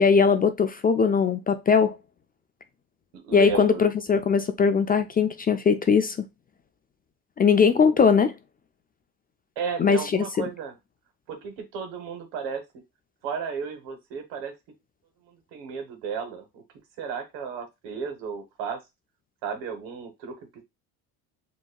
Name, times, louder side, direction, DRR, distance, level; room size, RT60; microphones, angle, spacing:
voice 1, 0.0-1.9 3.3-6.2 7.4-8.3 9.8-10.4, left 6 dB, 20° left, 0.4 m, -20 dB
voice 2, 3.1-3.8 9.5-10.7 11.3-12.6 13.2-14.5 15.2-16.6 17.0-18.8 19.4-20.3, right 6 dB, 80° right, 1.5 m, -33 dB
6.8 x 3.0 x 2.3 m
supercardioid pair, 85°, 42 cm